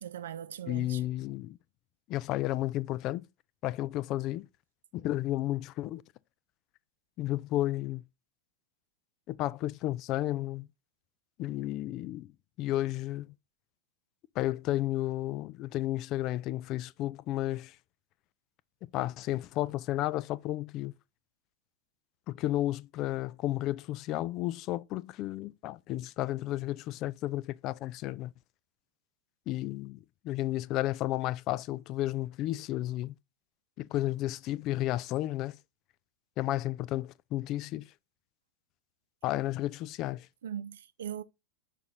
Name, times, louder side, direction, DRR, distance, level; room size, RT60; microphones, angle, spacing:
voice 1, 0.0-1.0 40.4-41.2, right 9 dB, 60° right, 0.4 m, -40 dB
voice 2, 0.7-1.6 2.1-3.2 3.6-4.5 4.9-6.0 7.2-8.0 9.3-10.7 11.4-12.3 12.6-13.3 14.4-17.8 18.8-20.9 22.3-28.3 29.5-30.0 30.2-33.2 33.8-35.6 36.4-37.9 39.2-40.3, left 15 dB, 40° left, 0.4 m, -32 dB
6.0 x 4.2 x 4.0 m
figure-of-eight pair, 90°, 0 cm